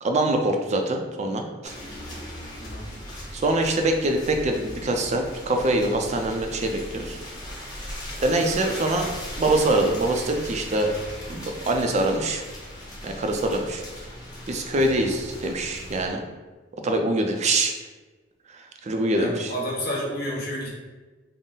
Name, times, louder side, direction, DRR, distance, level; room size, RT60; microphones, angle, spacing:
voice 1, 0.0-1.7 3.3-7.2 8.2-10.9 11.3-12.4 13.0-13.8 14.5-16.2 16.8-17.7 18.5-19.5, right 2 dB, 35° right, 4 dB, 0.4 m, -24 dB
sound 1, 1.6-16.1, left 1 dB, 20° left, 0.9 m, -38 dB
voice 2, 19.2-20.7, equal, 55° left, -3 dB, 0.9 m, -30 dB
3.8 x 2.0 x 3.8 m, 1.2 s
head